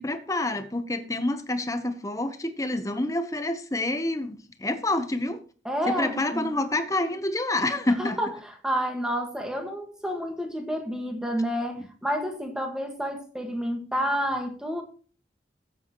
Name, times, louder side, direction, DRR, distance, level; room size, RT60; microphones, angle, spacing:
voice 1, 0.0-5.4 5.9-8.2 11.8-11.9, left 2 dB, 20° left, 1.0 m, -28 dB
voice 2, 5.7-6.5 8.0-14.8, equal, 5° right, 1.7 m, -29 dB
13.5 x 8.5 x 3.1 m
head